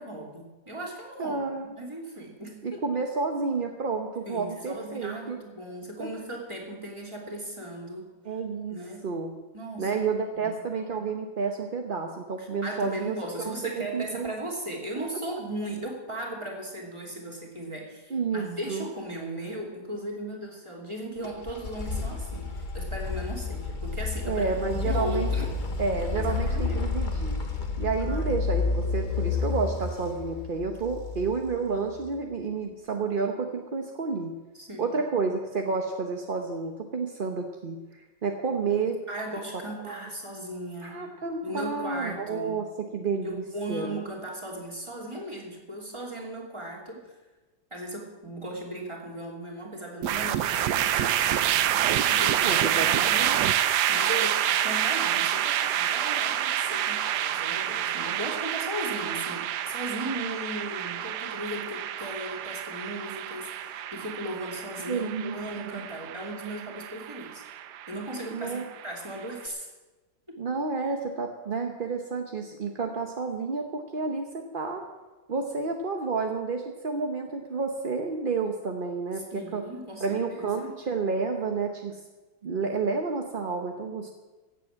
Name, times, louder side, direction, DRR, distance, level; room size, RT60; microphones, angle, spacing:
voice 1, 0.0-2.8 4.3-8.0 8.7-9.1 9.5-10.0 10.3-10.5 12.4-24.5 24.7-25.5 26.1-26.9 28.0-28.7 34.5-35.0 38.7-41.0 41.4-42.6 43.2-47.1 47.7-51.2 51.8-67.4 67.9-69.7 70.3-70.4 79.2-80.8, right 1 dB, 15° right, -1 dB, 2.9 m, -37 dB
voice 2, 1.2-1.8 2.6-5.4 6.0-6.1 8.2-8.8 9.0-9.3 9.8-14.3 18.1-18.9 24.2-25.3 25.8-27.4 27.8-34.3 34.8-39.0 39.8-40.0 40.8-42.7 42.9-43.4 43.7-44.0 52.4-53.1 64.9-65.3 65.7-65.8 68.3-68.6 70.4-74.8 75.3-79.6 80.0-82.0 82.4-84.1, right 4 dB, 40° right, 3 dB, 0.8 m, -30 dB
sound 1, 21.2-32.0, left 4 dB, 35° left, 1.0 m, -30 dB
sound 2, 50.0-69.3, right 11 dB, 70° right, 1.2 m, -28 dB
16.0 x 7.5 x 7.5 m, 1.2 s
omnidirectional pair, 2.0 m